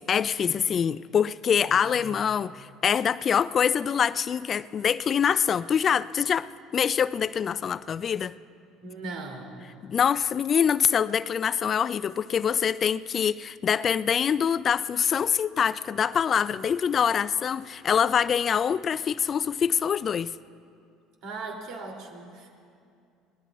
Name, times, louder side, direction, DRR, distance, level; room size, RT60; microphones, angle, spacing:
voice 1, 0.0-8.3 9.8-20.3, left 7 dB, 40° left, 18 dB, 0.3 m, -25 dB
voice 2, 1.7-2.2 8.8-9.6 21.2-22.5, right 3 dB, 60° right, 1 dB, 2.8 m, -39 dB
23.0 x 19.0 x 2.4 m, 2.4 s
hypercardioid pair, 65°, 0 cm